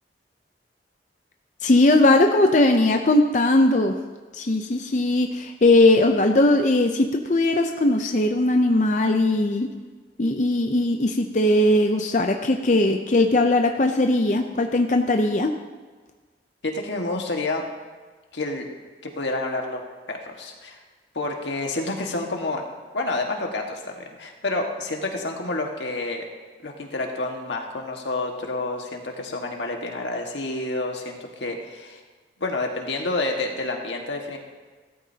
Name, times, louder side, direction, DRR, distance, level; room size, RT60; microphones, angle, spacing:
voice 1, 1.6-3.9 4.3-9.7 10.2-15.5, left 2 dB, 45° left, 4 dB, 0.6 m, -19 dB
voice 2, 16.6-17.6 18.3-18.7 19.0-19.8 20.1-20.8 21.1-22.6 22.9-26.2 26.6-32.0 32.4-34.4, left 2 dB, 90° left, 1 dB, 1.7 m, -29 dB
16.0 x 13.5 x 2.8 m, 1.4 s
head